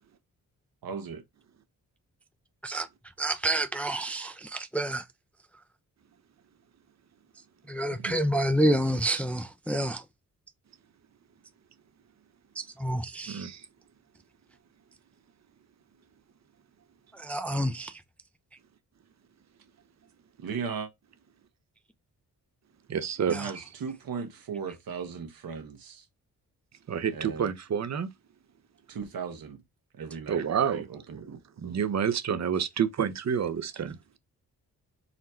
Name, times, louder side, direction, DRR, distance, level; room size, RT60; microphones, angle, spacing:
voice 1, 0.8-1.2 20.4-20.9 23.3-26.0 27.1-27.5 28.9-29.6 29.9-30.4 30.7-31.8, right 6 dB, 65° right, 1.0 m, -37 dB
voice 2, 3.2-5.0 7.7-10.0 12.6-13.4 17.1-18.0 23.3-23.5, right 1 dB, 5° left, 0.4 m, -28 dB
voice 3, 13.3-13.7 22.9-23.6 26.9-28.1 30.3-30.8 31.6-34.0, right 7 dB, 45° right, 0.7 m, -29 dB
3.9 x 2.1 x 4.3 m
cardioid pair, 55°, 38 cm